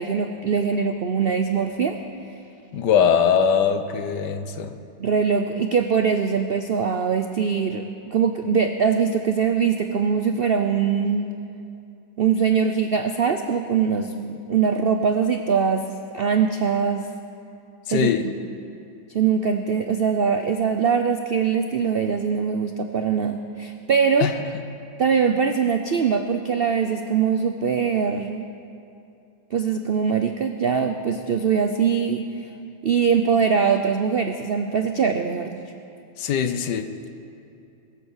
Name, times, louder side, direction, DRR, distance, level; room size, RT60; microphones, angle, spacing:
voice 1, 0.0-2.0 5.0-7.8 8.1-11.3 12.2-15.8 16.1-17.1 17.9-18.1 19.1-24.3 25.0-28.4 29.5-32.2 32.8-35.6, right 6 dB, 80° right, 7 dB, 0.5 m, -22 dB
voice 2, 2.7-4.8 17.9-18.3 24.2-24.3 36.2-36.9, left 7 dB, 75° left, 9 dB, 1.5 m, -21 dB
21.0 x 8.5 x 7.2 m, 2.6 s
omnidirectional pair, 1.9 m